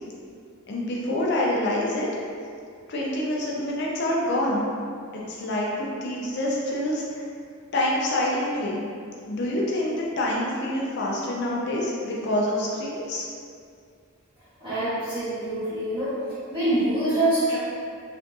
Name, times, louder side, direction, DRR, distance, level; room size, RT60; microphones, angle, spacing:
voice 1, 0.7-2.1 2.9-4.7 5.3-7.2 7.7-8.8 9.3-13.2, left 1 dB, 50° left, -4 dB, 0.5 m, -26 dB
voice 2, 14.6-16.1 16.5-17.6, right 1 dB, 25° right, -15 dB, 0.8 m, -25 dB
3.5 x 2.4 x 2.6 m, 2.3 s
head